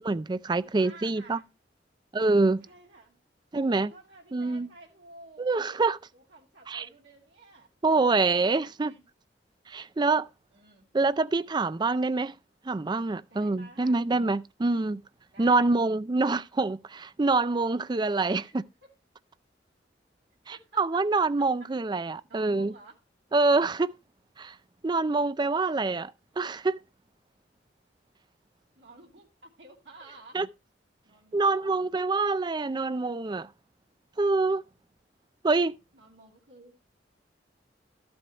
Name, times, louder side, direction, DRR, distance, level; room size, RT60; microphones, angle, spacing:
voice 1, 0.0-1.4 2.1-2.7 3.5-3.9 4.3-4.7 5.4-6.0 6.7-6.8 7.8-8.9 9.7-10.3 10.9-12.3 12.7-15.0 15.4-18.6 20.5-22.7 23.3-24.0 24.4-24.5 24.8-26.1 26.4-26.8 30.3-30.5 31.3-33.5 34.2-34.6 35.4-35.8, right 3 dB, 25° right, 0.4 m, -26 dB
voice 2, 0.6-1.5 2.6-3.2 3.6-5.9 6.1-7.7 8.3-9.0 10.5-10.9 13.3-14.0 15.3-15.8 18.3-18.9 20.5-20.8 22.0-23.0 28.8-30.4 31.0-31.8 35.9-36.7, right 2 dB, 80° right, 2.6 m, -52 dB
14.0 x 7.8 x 3.0 m
head